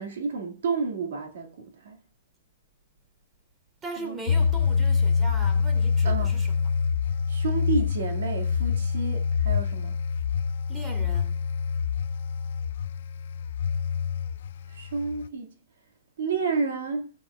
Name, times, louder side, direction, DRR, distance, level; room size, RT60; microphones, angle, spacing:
voice 1, 0.0-2.0 4.0-4.2 6.0-6.4 7.3-10.0 14.7-15.5 16.2-17.1, right 5 dB, 75° right, 1.9 m, -30 dB
voice 2, 3.8-6.7 10.7-11.4, right 2 dB, 15° right, 2.6 m, -39 dB
sound 1, 4.3-15.3, left 6 dB, 65° left, 0.5 m, -26 dB
17.5 x 8.6 x 2.3 m
hypercardioid pair, 160°, 0 cm